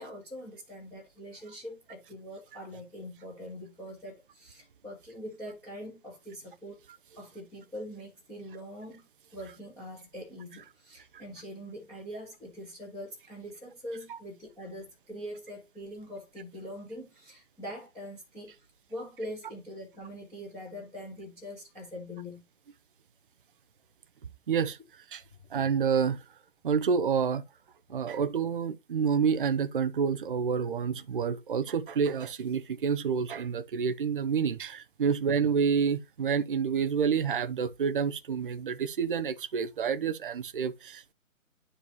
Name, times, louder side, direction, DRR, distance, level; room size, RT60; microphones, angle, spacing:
voice 1, 0.0-6.8 7.2-18.5 18.9-22.4, equal, 5° left, 1.7 m, -43 dB
voice 2, 24.5-24.8 25.1-25.2 25.5-26.2 26.6-27.4 27.9-41.1, right 6 dB, 40° right, 0.6 m, -28 dB
11.0 x 4.8 x 2.7 m
figure-of-eight pair, 145°, 41 cm